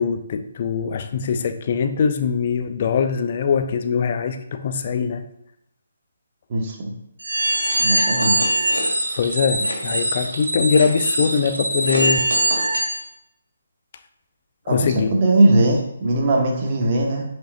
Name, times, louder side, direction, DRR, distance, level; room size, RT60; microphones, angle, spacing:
voice 1, 0.0-5.2 9.2-12.3 14.7-15.1, left 6 dB, 40° left, 9 dB, 0.6 m, -22 dB
voice 2, 6.5-6.9 7.8-8.4 14.6-17.2, right 1 dB, 35° right, 0 dB, 1.6 m, -19 dB
sound 1, 7.2-13.0, right 1 dB, 75° right, 2.1 m, -22 dB
10.5 x 5.2 x 2.6 m, 0.79 s
figure-of-eight pair, 140°, 0 cm